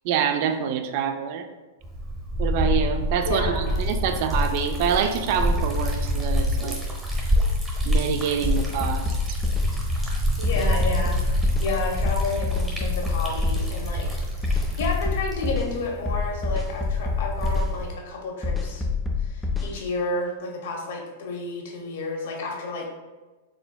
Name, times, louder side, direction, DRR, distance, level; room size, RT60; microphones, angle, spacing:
voice 1, 0.0-1.5 2.4-6.8 7.8-9.1, right 8 dB, 55° right, 7 dB, 0.4 m, -26 dB
Liquid, 1.8-17.9, equal, 10° right, 0.9 m, -26 dB
voice 2, 3.2-3.8 10.4-14.1 14.4-18.8 19.2-22.9, left 2 dB, 70° left, 0 dB, 1.0 m, -31 dB
sound 1, 8.4-9.7 10.4-11.7 12.1-13.7 14.4-15.7 16.1-17.7 18.4-19.7, left 4 dB, 10° left, 0.4 m, -26 dB
4.4 x 3.4 x 2.3 m, 1.2 s
hypercardioid pair, 130°, 0 cm